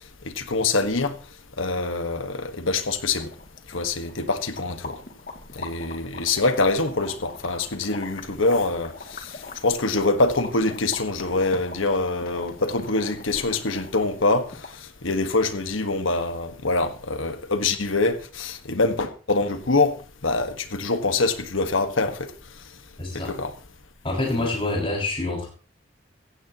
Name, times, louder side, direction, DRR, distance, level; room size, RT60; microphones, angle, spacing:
voice 1, 0.2-1.1 1.6-3.3 3.7-5.0 5.5-9.3 9.6-14.5 15.0-19.9 20.2-22.2 23.1-23.5, left 3 dB, 85° left, 1.5 m, -24 dB
sound 1, 3.2-14.9, left 3 dB, 50° left, 2.4 m, -41 dB
voice 2, 23.0-23.3 24.0-25.5, left 2 dB, 25° left, 6.0 m, -26 dB
16.5 x 15.0 x 3.0 m
head